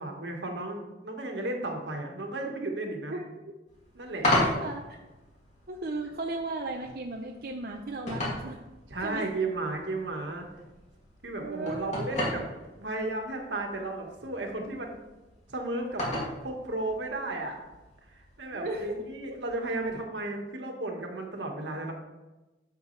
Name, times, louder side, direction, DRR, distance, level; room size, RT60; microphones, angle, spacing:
voice 1, 0.0-3.2 3.9-4.3 8.9-10.5 11.2-12.5 12.8-15.0 15.5-16.1 16.4-17.6 18.1-21.9, right 2 dB, 85° right, 1 dB, 1.7 m, -34 dB
voice 2, 3.1-3.5 4.3-4.8 5.7-8.6 9.0-9.3 11.4-12.0 18.5-19.0 19.3-19.4, right 2 dB, 55° right, 1 dB, 0.7 m, -36 dB
sound 1, 3.7-20.0, left 1 dB, 40° left, 2.5 m, -36 dB
12.0 x 6.7 x 3.3 m, 1.1 s
head